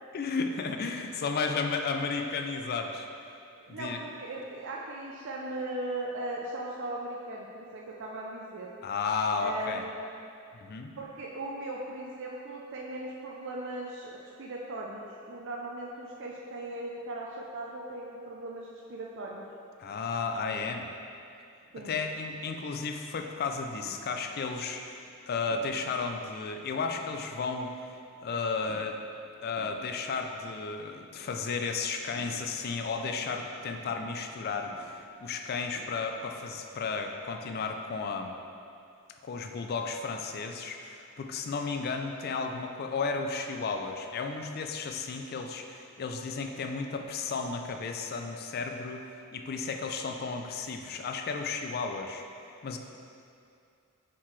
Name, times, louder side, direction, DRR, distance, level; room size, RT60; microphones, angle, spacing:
voice 1, 0.1-3.1 3.7-4.0 8.8-9.8 10.5-10.9 19.8-20.9 21.8-27.7 28.2-29.0 29.4-38.4 39.2-52.2 52.6-52.8, left 4 dB, 45° left, 4 dB, 0.4 m, -33 dB
voice 2, 3.7-8.7 9.4-10.1 11.0-19.4 21.7-21.9, right 1 dB, 55° right, -2 dB, 0.5 m, -38 dB
sound 1, 21.6-36.1, right 1 dB, 80° right, 0.8 m, -57 dB
7.2 x 4.6 x 3.2 m, 2.5 s
head